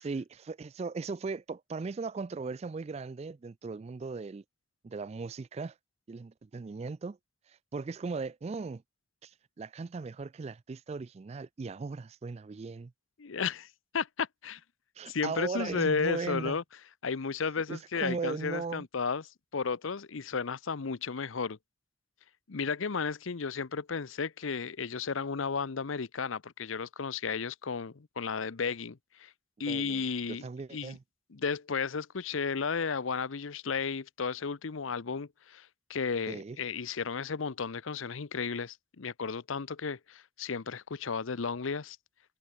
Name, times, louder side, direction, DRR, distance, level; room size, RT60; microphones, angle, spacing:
voice 1, 0.0-4.4 4.8-5.8 6.1-7.2 7.5-8.8 9.2-12.9 15.0-16.6 17.7-18.9 29.7-30.0 30.3-31.0 36.3-36.6, right 4 dB, 30° right, 0.3 m, -38 dB
voice 2, 13.2-13.7 13.9-14.6 15.1-16.6 17.0-21.6 22.5-29.3 29.6-30.4 30.7-31.0 31.3-42.0, left 5 dB, 80° left, 0.7 m, -33 dB
head